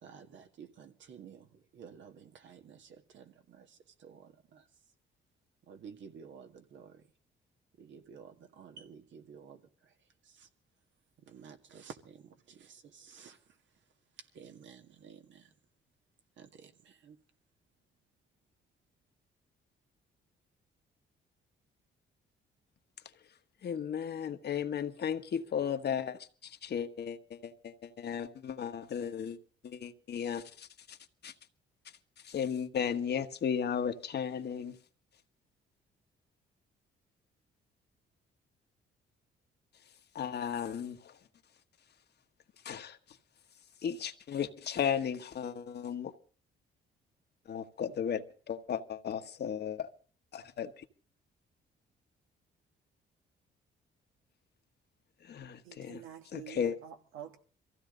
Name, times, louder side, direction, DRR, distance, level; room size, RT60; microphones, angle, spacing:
voice 1, 0.0-4.6 5.7-7.0 7.8-9.6 10.3-10.5 11.3-13.4 14.3-15.5 16.4-17.2, right 7 dB, 70° right, 2.0 m, -52 dB
voice 2, 23.6-29.4 29.6-31.0 31.2-31.3 32.2-34.8 40.1-41.1 42.6-43.0 43.8-46.1 47.5-49.9 50.3-50.7 55.2-56.0 56.3-56.8, left 8 dB, 55° left, 1.4 m, -35 dB
voice 3, 55.6-57.4, right 10 dB, 90° right, 1.7 m, -47 dB
23.0 x 15.5 x 3.9 m
cardioid pair, 90°, 20 cm